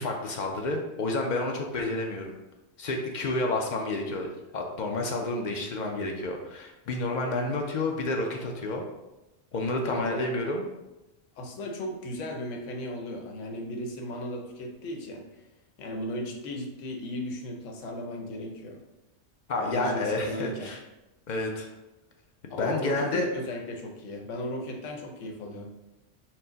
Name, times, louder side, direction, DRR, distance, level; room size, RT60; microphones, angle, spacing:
voice 1, 0.0-2.4 2.8-4.3 4.5-8.8 9.5-10.7 19.5-20.8 21.3-21.7 22.6-23.3, left 2 dB, 65° left, 2 dB, 0.4 m, -30 dB
voice 2, 9.8-10.2 11.4-15.2 15.8-18.8 19.6-20.7 22.5-25.6, left 1 dB, 85° left, 2 dB, 1.0 m, -36 dB
4.4 x 2.0 x 3.8 m, 1.0 s
omnidirectional pair, 1.2 m